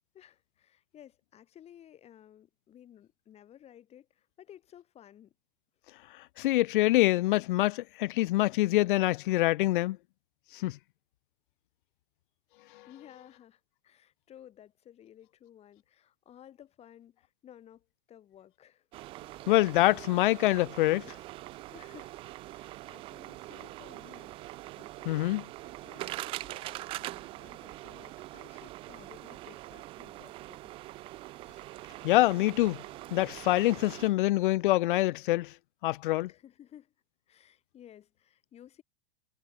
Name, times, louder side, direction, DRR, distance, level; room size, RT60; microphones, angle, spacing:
voice 1, 0.1-5.3 12.9-18.9 21.7-25.2 25.6-30.8 36.3-36.9 37.3-38.8, left 10 dB, 20° left, 7.1 m, -55 dB
voice 2, 6.4-10.0 10.6-10.8 19.5-21.1 25.1-25.4 32.0-32.8 33.1-35.5 35.8-36.3, left 17 dB, 60° left, 1.3 m, -25 dB
sound 1, 18.9-34.1, right 17 dB, 20° right, 0.5 m, -43 dB
supercardioid pair, 165°, 30 cm